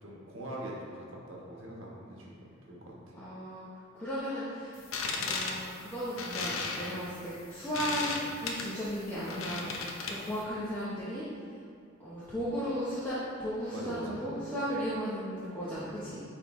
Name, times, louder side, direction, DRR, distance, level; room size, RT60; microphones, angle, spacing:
voice 1, 0.0-3.2 13.7-14.2, right 1 dB, 80° right, -3 dB, 1.2 m, -43 dB
voice 2, 3.1-4.8 5.1-8.1 8.4-11.2 12.0-16.2, equal, 10° left, -11 dB, 0.9 m, -36 dB
sound 1, 4.8-10.4, left 4 dB, 90° left, 0.7 m, -36 dB
8.9 x 3.6 x 3.1 m, 2.4 s
head